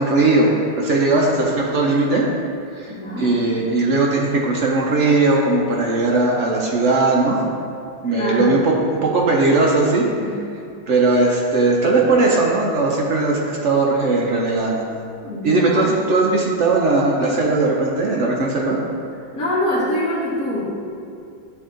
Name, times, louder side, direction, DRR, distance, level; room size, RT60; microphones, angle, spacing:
voice 1, 0.0-2.2 2.7-7.4 8.0-8.7 9.0-10.1 10.9-14.8 15.4-18.8, right 3 dB, 80° right, -3 dB, 0.6 m, -18 dB
voice 2, 2.9-3.3 8.1-8.6 10.2-10.4 15.2-15.9 19.3-20.6, left 1 dB, 45° left, -12 dB, 1.7 m, -24 dB
10.5 x 3.6 x 3.7 m, 2.4 s
omnidirectional pair, 2.3 m